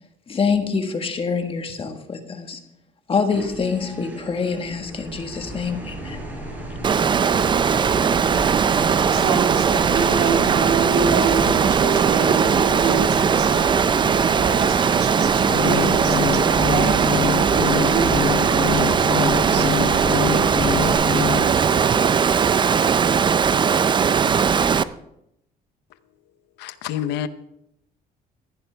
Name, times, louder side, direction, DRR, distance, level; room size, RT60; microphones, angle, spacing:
voice 1, 0.3-2.6 3.1-6.2, left 5 dB, 35° left, 1.5 m, -25 dB
sound 1, 3.3-20.9, right 1 dB, 10° right, 4.9 m, -34 dB
Water, 6.8-24.8, right 6 dB, 30° right, 0.4 m, -19 dB
voice 2, 8.3-23.5, right 6 dB, 75° right, 2.4 m, -29 dB
sound 2, 15.5-21.5, left 8 dB, 65° left, 1.9 m, -26 dB
voice 3, 26.6-27.3, left 10 dB, 85° left, 0.7 m, -27 dB
15.0 x 10.5 x 3.4 m
cardioid pair, 110°, 17 cm